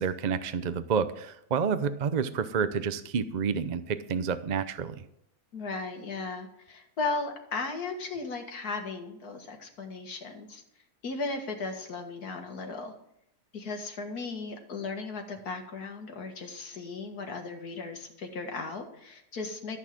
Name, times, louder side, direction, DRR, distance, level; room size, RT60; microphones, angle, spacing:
voice 1, 0.0-5.0, right 6 dB, 45° right, 11 dB, 0.6 m, -29 dB
voice 2, 5.5-10.6 11.0-12.9 13.5-19.8, left 3 dB, 75° left, 3 dB, 2.3 m, -36 dB
13.5 x 6.3 x 7.5 m, 0.76 s
omnidirectional pair, 1.6 m